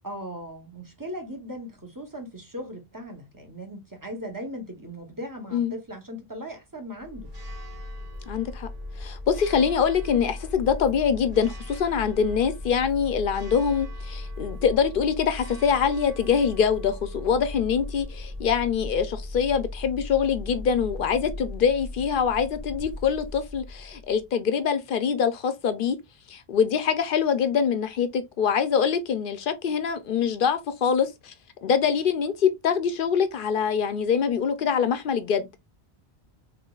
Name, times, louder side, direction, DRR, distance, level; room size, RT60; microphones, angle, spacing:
voice 1, 0.0-7.3, equal, 20° right, 0.8 m, -38 dB
Church bell, 7.0-24.3, left 1 dB, 40° right, 1.8 m, -37 dB
voice 2, 8.3-8.7 9.0-26.0 26.3-31.3 31.6-35.6, left 7 dB, 60° left, 0.6 m, -24 dB
3.7 x 3.5 x 2.3 m
omnidirectional pair, 1.1 m